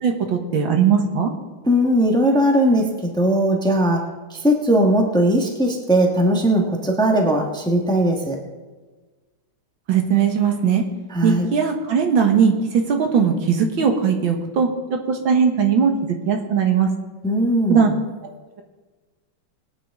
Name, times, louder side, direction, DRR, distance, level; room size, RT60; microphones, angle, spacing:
voice 1, 0.0-1.3 9.9-10.8 11.2-15.9 16.3-16.9 17.7-17.9 18.2-18.3, right 6 dB, 75° right, 4 dB, 2.1 m, -19 dB
voice 2, 1.6-4.0 4.3-8.4 11.1-11.5 17.2-17.9, right 1 dB, 5° left, 1 dB, 1.2 m, -19 dB
22.0 x 9.0 x 3.7 m, 1.3 s
omnidirectional pair, 2.2 m